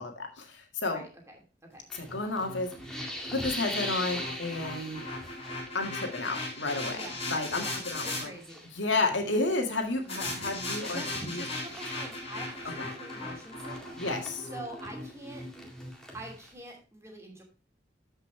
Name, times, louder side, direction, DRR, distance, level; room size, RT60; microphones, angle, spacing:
voice 1, 0.0-1.0 1.9-5.0 5.7-8.3 8.7-11.4 12.8-12.9 14.0-14.5, left 3 dB, 85° left, 3 dB, 2.0 m, -32 dB
voice 2, 0.9-1.4 1.7-1.8 6.9-7.2 7.6-8.7 10.0-10.4 10.6-14.0 14.5-15.4 16.1-17.4, right 1 dB, 15° right, 0 dB, 2.8 m, -45 dB
sound 1, 1.9-5.9 6.1-6.5 6.9-9.4 9.7-16.5, equal, 5° left, 2.0 m, -42 dB
sound 2, 2.0-8.2 10.1-16.3, left 2 dB, 35° left, 4.0 m, -38 dB
13.5 x 5.5 x 3.3 m, 0.35 s
head